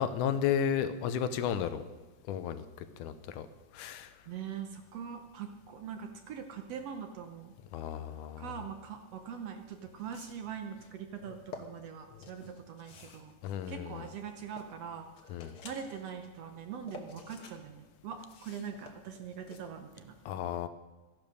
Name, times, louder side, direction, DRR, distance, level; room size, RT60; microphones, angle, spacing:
voice 1, 0.0-1.8 2.3-2.6 3.0-3.5 3.7-4.1 7.7-8.5 13.4-14.1 15.3-15.5 20.3-20.7, left 8 dB, 80° left, 12 dB, 2.2 m, -33 dB
voice 2, 4.3-7.5 8.4-13.3 13.7-15.1 15.3-20.1, right 7 dB, 65° right, 6 dB, 1.7 m, -42 dB
sound 1, 9.2-9.3 9.9-10.6 11.2-11.6 12.2-14.8 15.2-16.1 16.5-17.6 17.9-19.6, left 5 dB, 55° left, 1.8 m, -51 dB
14.0 x 10.5 x 6.5 m, 1.3 s
omnidirectional pair, 3.6 m